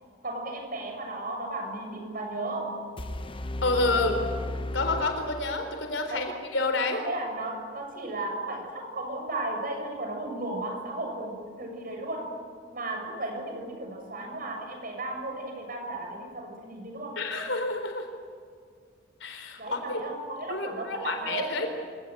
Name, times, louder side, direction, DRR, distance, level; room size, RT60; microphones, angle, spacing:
voice 1, 0.2-2.8 6.1-6.4 6.9-12.3 12.7-17.2 19.6-21.7, right 2 dB, 45° right, 3 dB, 7.1 m, -35 dB
sound 1, 3.0-6.0, left 1 dB, 25° left, 1.0 m, -35 dB
voice 2, 3.6-4.2 4.7-6.3 6.5-7.0 17.2-18.1 19.2-20.0 20.5-21.7, left 3 dB, 70° left, 5 dB, 4.0 m, -28 dB
28.0 x 18.0 x 9.0 m, 2.1 s
head